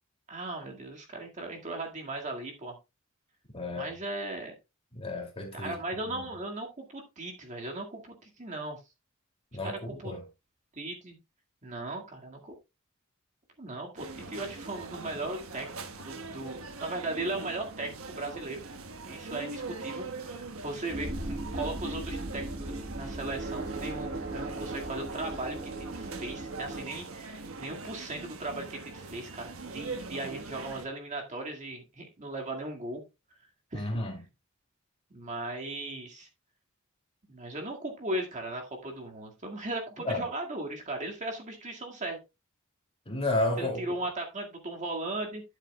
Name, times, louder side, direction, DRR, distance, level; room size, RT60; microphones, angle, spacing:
voice 1, 0.3-2.8 3.7-4.5 5.5-8.8 9.6-10.1 10.8-11.2 11.6-12.5 13.6-18.6 19.1-33.0 33.7-33.9 35.1-36.3 37.3-42.2 43.6-45.4, right 2 dB, 35° right, 2.0 m, -37 dB
voice 2, 3.5-3.9 4.9-5.8 6.1-6.2 9.5-10.2 33.7-34.2 40.0-40.2 43.1-43.8, left 2 dB, 25° left, 2.6 m, -31 dB
sound 1, 14.0-30.9, right 3 dB, 75° right, 1.3 m, -42 dB
sound 2, 20.8-26.8, right 2 dB, 60° right, 1.8 m, -37 dB
13.0 x 7.4 x 2.3 m
head